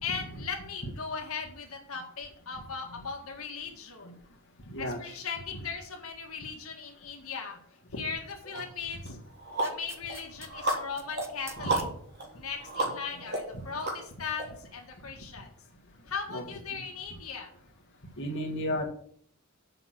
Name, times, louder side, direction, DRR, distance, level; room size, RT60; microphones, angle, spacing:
voice 1, 0.0-4.1 4.8-7.6 7.9-9.2 9.6-11.9 12.4-15.5 16.1-17.5, left 5 dB, 85° left, 2 dB, 1.8 m, -38 dB
voice 2, 4.7-5.1 11.6-11.7 16.3-16.4 18.2-18.8, left 1 dB, 60° left, 0 dB, 1.9 m, -32 dB
sound 1, 8.5-8.6 9.1-14.4, right 2 dB, 50° right, 3.1 m, -34 dB
sound 2, 9.6-11.9 13.5-13.6, right 3 dB, 10° right, 0.9 m, -46 dB
7.6 x 5.9 x 7.7 m, 0.63 s
head